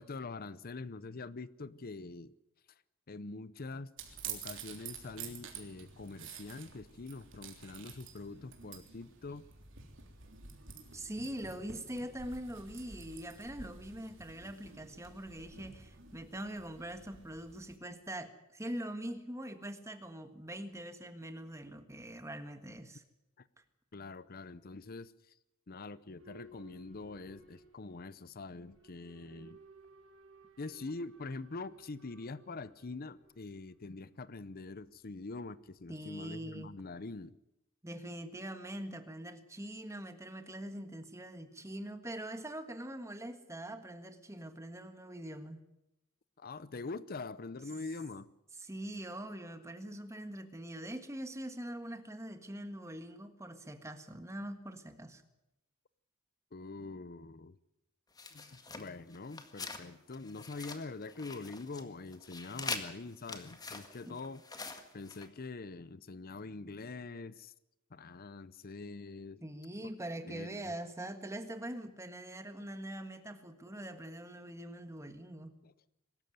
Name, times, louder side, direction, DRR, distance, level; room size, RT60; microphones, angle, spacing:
voice 1, 0.0-2.3 3.1-3.9 4.2-9.5 23.9-25.1 25.7-29.6 30.6-37.4 46.4-48.3 56.5-57.6 58.3-64.4 64.9-67.5 67.9-69.4 70.3-70.8 75.6-75.7, left 3 dB, 45° left, 0.7 m, -44 dB
sound 1, 4.0-17.8, right 7 dB, 60° right, 3.4 m, -50 dB
voice 2, 10.9-23.0 35.9-36.7 37.8-45.6 48.6-55.2 64.0-64.2 69.4-75.5, right 1 dB, 15° right, 1.6 m, -43 dB
Boat Water vehicle / Alarm, 26.2-36.8, right 3 dB, 85° right, 6.0 m, -61 dB
sound 2, 58.2-59.8 60.1-61.8 62.1-65.3, left 4 dB, 20° left, 1.8 m, -44 dB
23.0 x 13.5 x 9.3 m
head